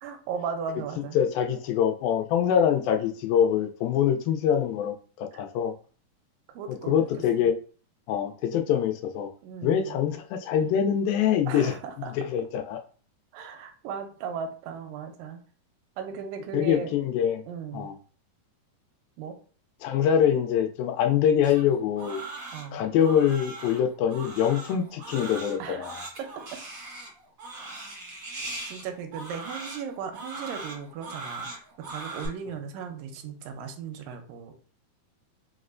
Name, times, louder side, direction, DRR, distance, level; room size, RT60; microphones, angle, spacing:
voice 1, 0.0-1.2 5.3-5.4 6.5-7.5 9.4-10.0 11.5-12.1 13.3-15.4 16.0-16.9 17.5-17.9 19.2-19.4 22.5-22.9 25.6-26.3 28.7-34.6, right 6 dB, 80° right, 5 dB, 2.2 m, -37 dB
voice 2, 1.0-5.7 6.9-7.5 8.1-9.3 9.6-11.7 12.1-12.8 16.5-17.4 17.7-17.9 19.8-22.2 22.7-26.0, left 9 dB, 90° left, 5 dB, 2.3 m, -24 dB
Crying sobbing, 21.4-32.3, right 3 dB, 65° right, 1.0 m, -40 dB
5.5 x 2.1 x 2.5 m, 0.40 s
omnidirectional pair, 4.0 m